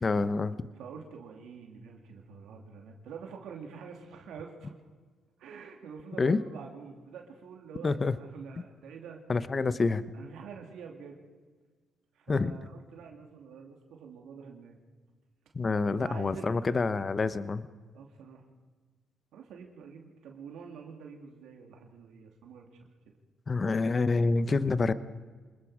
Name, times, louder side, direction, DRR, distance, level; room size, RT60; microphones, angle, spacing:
voice 1, 0.0-0.6 6.2-6.4 7.8-8.2 9.3-10.0 12.3-12.5 15.5-17.7 23.5-24.9, left 3 dB, 35° left, 14 dB, 0.9 m, -27 dB
voice 2, 0.7-4.7 5.4-9.2 10.1-11.2 12.1-14.8 15.8-16.6 17.9-18.4 19.3-23.1, right 6 dB, 80° right, 2 dB, 2.8 m, -46 dB
26.5 x 20.5 x 5.0 m, 1.4 s
cardioid pair, 90°, 0 cm